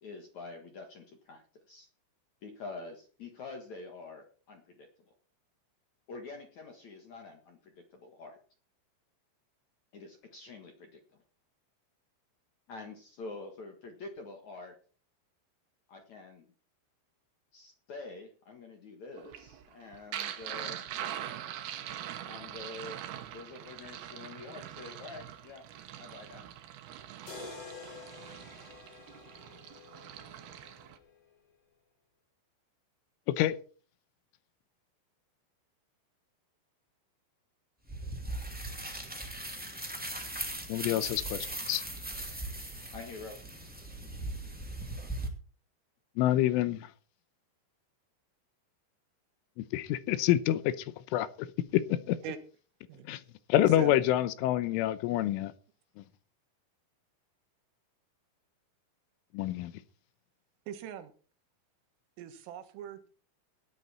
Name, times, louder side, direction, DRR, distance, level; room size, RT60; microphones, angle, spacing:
voice 1, 0.0-1.9 2.4-4.9 6.1-8.4 9.9-11.0 12.7-14.8 15.9-16.5 17.5-20.8 22.2-23.0 23.3-25.6 26.0-26.5 42.9-43.4, left 3 dB, 60° left, 2.0 m, -46 dB
sound 1, 19.2-31.0, right 11 dB, 65° right, 2.7 m, -43 dB
sound 2, 27.3-31.3, left 4 dB, 35° left, 4.7 m, -49 dB
sound 3, 37.9-45.3, right 1 dB, 5° right, 0.8 m, -39 dB
voice 2, 40.7-41.8 46.2-46.9 49.6-50.9 51.1-51.5 51.7-52.2 53.1-53.2 53.5-55.5 59.3-59.7, left 13 dB, 85° left, 3.3 m, -27 dB
voice 3, 53.6-54.0 60.7-61.1 62.2-63.1, right 9 dB, 85° right, 4.0 m, -41 dB
17.0 x 11.0 x 4.3 m
omnidirectional pair, 5.7 m